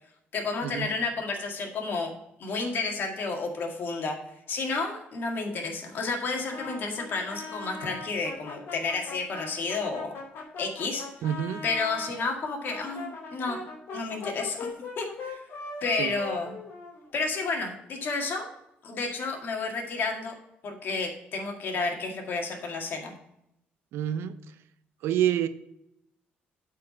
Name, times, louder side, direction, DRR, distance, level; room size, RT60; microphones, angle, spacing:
voice 1, 0.3-2.1 2.4-4.2 4.5-10.1 10.6-11.0 11.6-13.6 13.9-14.7 15.0-15.4 15.8-16.5 17.1-18.5 18.8-20.3 20.6-23.1, left 3 dB, 60° left, 2 dB, 2.0 m, -31 dB
Brass instrument, 6.5-12.1 12.7-17.4, left 3 dB, 75° left, 2.5 m, -40 dB
voice 2, 11.2-11.6 16.0-16.1 23.9-24.4 25.0-25.5, right 10 dB, 85° right, 12 dB, 0.6 m, -27 dB
8.4 x 4.7 x 5.4 m, 0.79 s
cardioid pair, 100°, 4 cm